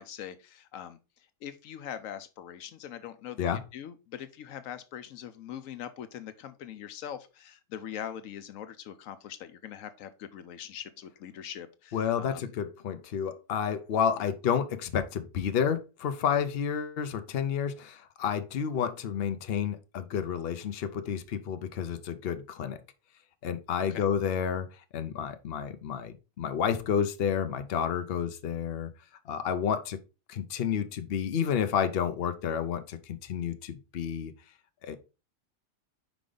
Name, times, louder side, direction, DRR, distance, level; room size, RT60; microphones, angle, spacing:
voice 1, 0.0-12.5 14.2-14.3 23.9-24.0, left 9 dB, 85° left, 1.1 m, -42 dB
voice 2, 11.9-22.8 23.4-24.7 24.9-28.9 29.3-30.0 30.3-34.3 34.8-35.0, left 8 dB, 55° left, 0.9 m, -30 dB
5.2 x 4.9 x 3.8 m
omnidirectional pair, 1.3 m